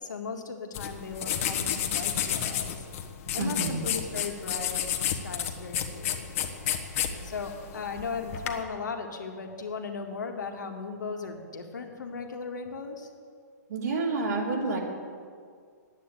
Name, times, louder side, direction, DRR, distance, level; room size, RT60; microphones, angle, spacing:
voice 1, 0.0-2.9 3.3-6.3 7.2-13.1, left 5 dB, 80° left, 3 dB, 1.9 m, -37 dB
sound 1, 0.7-8.6, left 9 dB, 50° left, 1.5 m, -31 dB
voice 2, 3.4-3.8 13.7-14.8, right 3 dB, 65° right, -1 dB, 3.1 m, -29 dB
10.5 x 9.2 x 8.3 m, 2.1 s
hypercardioid pair, 130°, 10 cm